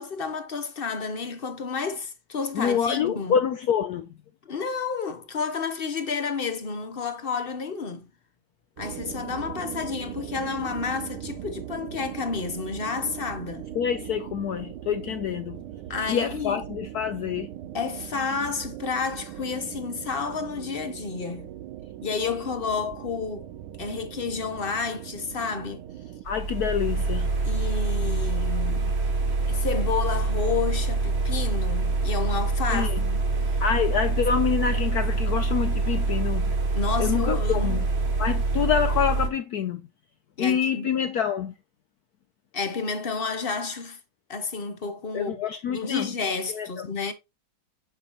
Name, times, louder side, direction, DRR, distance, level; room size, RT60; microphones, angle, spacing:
voice 1, 0.0-3.4 4.5-8.1 8.8-13.7 15.9-16.6 17.7-21.5 22.0-23.5 23.8-25.8 27.4-28.9 29.5-33.2 36.7-37.9 40.4-40.9 42.5-44.0 44.3-45.4 45.7-47.1, left 5 dB, 45° left, 0.7 m, -30 dB
voice 2, 2.5-4.1 13.7-15.6 16.1-17.5 26.2-27.3 32.7-33.0 33.6-36.5 37.0-37.9 38.2-39.9 40.4-41.5 45.1-46.1 46.5-46.9, left 8 dB, 80° left, 0.8 m, -26 dB
sound 1, 8.8-26.2, right 12 dB, 90° right, 1.6 m, -39 dB
sound 2, 26.2-39.3, right 3 dB, 40° right, 1.0 m, -25 dB
8.7 x 5.6 x 3.0 m
omnidirectional pair, 2.3 m